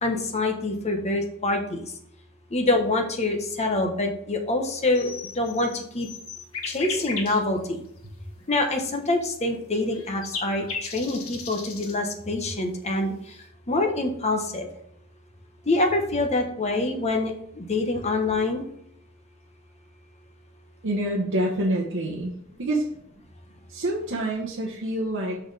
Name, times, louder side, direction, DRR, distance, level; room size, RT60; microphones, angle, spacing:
voice 1, 0.0-1.9 2.5-6.1 6.7-7.8 8.5-13.1 13.7-14.7 15.7-18.6, left 2 dB, 30° left, 3 dB, 1.1 m, -25 dB
sound 1, 5.0-7.4 8.0-8.1 9.5-12.0, left 5 dB, 75° left, 1.5 m, -36 dB
voice 2, 20.8-22.3 22.6-22.9 23.7-25.4, right 1 dB, 60° right, -3 dB, 1.1 m, -26 dB
6.4 x 6.1 x 3.4 m, 0.73 s
head